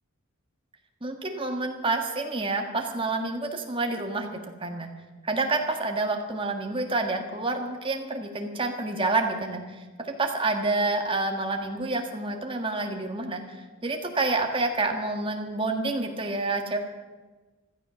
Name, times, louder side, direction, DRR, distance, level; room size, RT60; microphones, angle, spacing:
voice 1, 1.0-4.3 4.6-4.9 5.2-9.6 10.2-13.4 13.8-16.8, right 2 dB, 25° right, 3 dB, 1.6 m, -28 dB
15.5 x 13.5 x 6.2 m, 1.3 s
head